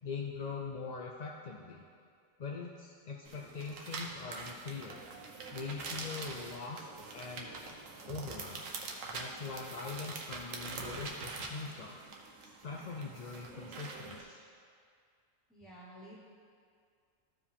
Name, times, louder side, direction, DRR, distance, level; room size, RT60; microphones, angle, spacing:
voice 1, 0.0-1.8 2.4-5.0 5.5-7.6 8.1-8.6 9.1-12.0 12.4-14.5, left 4 dB, 50° left, -1 dB, 0.5 m, -42 dB
sound 1, 3.3-14.2, right 3 dB, 85° right, 1.3 m, -44 dB
voice 2, 15.5-16.2, right 1 dB, ahead, -7 dB, 1.1 m, -51 dB
14.0 x 4.8 x 3.6 m, 2.2 s
omnidirectional pair, 1.3 m